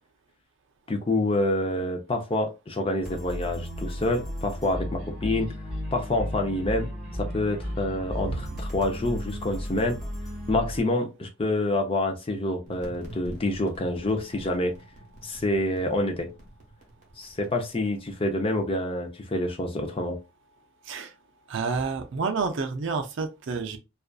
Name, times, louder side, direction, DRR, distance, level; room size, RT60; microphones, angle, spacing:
voice 1, 0.9-5.5 5.9-10.0 10.5-14.7 15.2-16.3 17.2-20.2, left 1 dB, 25° left, 0.5 m, -27 dB
sound 1, 3.0-10.8, equal, ahead, 1.1 m, -34 dB
sound 2, 12.6-18.1, right 1 dB, 35° right, 0.8 m, -47 dB
voice 2, 21.5-23.8, right 4 dB, 55° right, 0.5 m, -29 dB
2.5 x 2.4 x 2.2 m
head